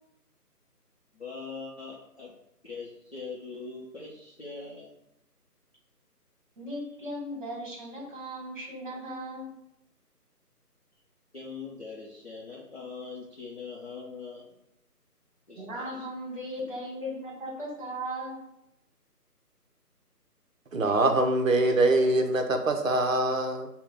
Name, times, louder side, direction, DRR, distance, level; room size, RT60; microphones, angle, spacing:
voice 1, 1.2-2.3 2.6-4.9 11.3-14.5 15.5-15.8, left 4 dB, 40° left, -6 dB, 0.6 m, -41 dB
voice 2, 6.6-9.6 15.6-18.5, equal, 30° right, -2 dB, 1.4 m, -37 dB
voice 3, 20.7-23.7, right 2 dB, 55° right, 5 dB, 0.7 m, -24 dB
5.5 x 2.2 x 3.6 m, 0.82 s
figure-of-eight pair, 165°, 48 cm